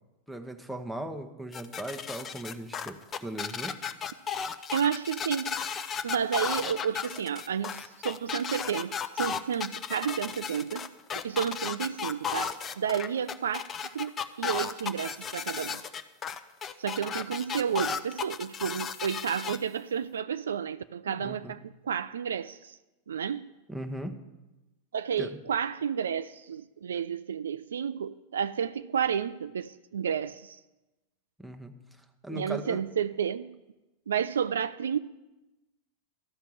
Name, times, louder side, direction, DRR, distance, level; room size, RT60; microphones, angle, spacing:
voice 1, 0.3-3.8 16.6-16.7 21.1-21.5 23.7-24.2 25.2-25.4 31.4-31.7 32.2-32.8, right 1 dB, ahead, 1.0 m, -38 dB
sound 1, 1.5-19.6, left 7 dB, 25° left, 0.6 m, -34 dB
voice 2, 4.7-5.5 6.0-10.9 11.2-14.1 14.4-15.8 16.8-22.8 23.1-23.5 24.9-30.6 32.3-33.6 34.1-35.0, right 8 dB, 65° right, 0.3 m, -31 dB
13.0 x 5.8 x 7.7 m
figure-of-eight pair, 90°, 0 cm